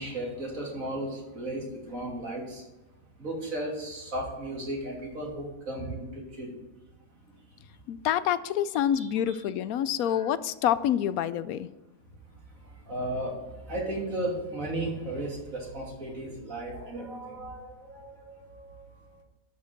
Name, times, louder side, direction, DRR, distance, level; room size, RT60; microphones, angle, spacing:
voice 1, 0.0-2.6 3.2-6.1 6.4-6.5 9.0-9.4 10.0-10.3 12.9-13.4 13.7-18.8, right 1 dB, 70° right, -2 dB, 3.4 m, -35 dB
voice 2, 7.9-11.7, left 10 dB, 85° left, 15 dB, 1.1 m, -27 dB
12.0 x 5.8 x 6.4 m, 1.1 s
omnidirectional pair, 1.5 m